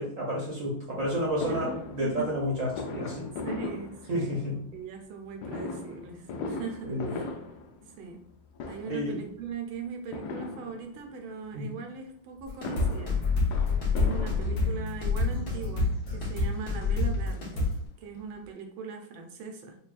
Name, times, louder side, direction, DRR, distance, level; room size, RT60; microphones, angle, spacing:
voice 1, 0.0-3.3 4.1-4.6 6.8-7.1 8.9-9.3 11.5-11.7, equal, 55° right, -4 dB, 0.9 m, -31 dB
Fireworks, 1.4-4.6 5.4-8.3 8.5-9.2 10.1-11.2 12.4-15.0 15.8-15.9 16.2-16.3 16.6-17.9 18.2-18.3 18.4-18.5, left 3 dB, 70° left, 0.9 m, -39 dB
voice 2, 3.4-7.4 7.8-8.2 8.6-19.8, right 5 dB, 90° right, 4 dB, 1.5 m, -40 dB
sound 1, 12.5-17.8, left 3 dB, 55° left, 1.6 m, -27 dB
5.5 x 2.3 x 2.4 m, 0.63 s
omnidirectional pair, 2.2 m